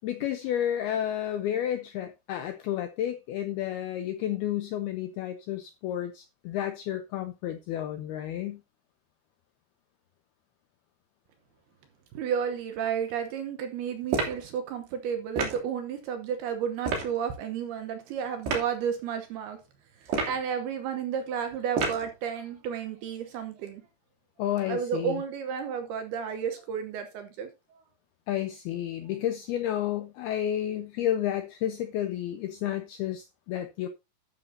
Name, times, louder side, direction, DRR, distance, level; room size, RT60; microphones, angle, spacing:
voice 1, 0.0-8.6 24.4-25.2 28.3-33.9, left 11 dB, 85° left, 2.2 m, -31 dB
voice 2, 12.1-19.6 20.0-23.8 24.7-27.8, right 7 dB, 75° right, 2.5 m, -32 dB
sound 1, 14.1-14.4 15.4-15.6 16.8-17.1 18.4-18.7 20.1-20.5 21.8-22.1, right 4 dB, 60° right, 4.8 m, -29 dB
12.5 x 8.9 x 2.7 m
omnidirectional pair, 5.5 m